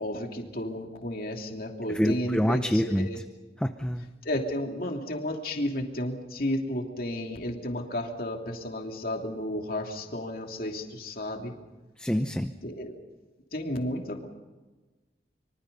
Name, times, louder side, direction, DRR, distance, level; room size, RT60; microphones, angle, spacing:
voice 1, 0.0-3.2 4.2-11.6 12.6-13.0 13.5-14.3, left 1 dB, 55° left, 2 dB, 3.0 m, -32 dB
voice 2, 1.9-3.1 3.6-4.1 12.0-12.5, equal, 5° left, 7 dB, 0.7 m, -26 dB
25.5 x 24.5 x 5.5 m, 1.2 s
head